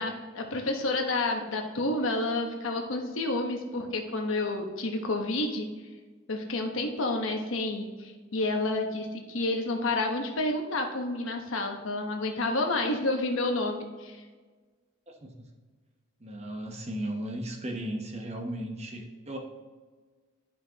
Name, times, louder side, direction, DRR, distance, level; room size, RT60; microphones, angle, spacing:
voice 1, 0.0-5.7 6.3-14.2, left 2 dB, 90° left, 3 dB, 1.1 m, -30 dB
voice 2, 15.1-15.5 16.2-19.4, right 1 dB, 35° right, 3 dB, 1.0 m, -36 dB
11.5 x 5.2 x 2.9 m, 1.4 s
head